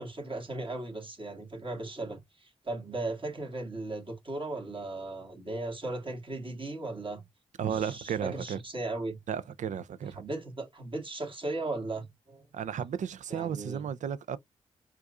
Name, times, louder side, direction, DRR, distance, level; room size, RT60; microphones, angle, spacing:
voice 1, 0.0-7.2 7.6-9.2 10.2-12.5 13.3-13.9, right 2 dB, 40° right, 1.9 m, -37 dB
voice 2, 7.6-8.6 9.3-10.2 12.5-14.4, right 8 dB, 70° right, 0.4 m, -33 dB
4.5 x 2.6 x 2.4 m
supercardioid pair, 45°, 13 cm